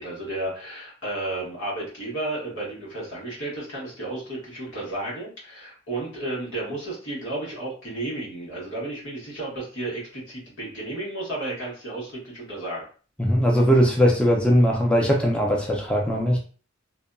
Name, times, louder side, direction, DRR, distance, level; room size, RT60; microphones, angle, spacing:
voice 1, 0.0-12.8, right 2 dB, 85° left, -5 dB, 1.4 m, -33 dB
voice 2, 13.2-16.4, equal, 5° left, -1 dB, 0.4 m, -20 dB
2.7 x 2.5 x 2.2 m, 0.40 s
head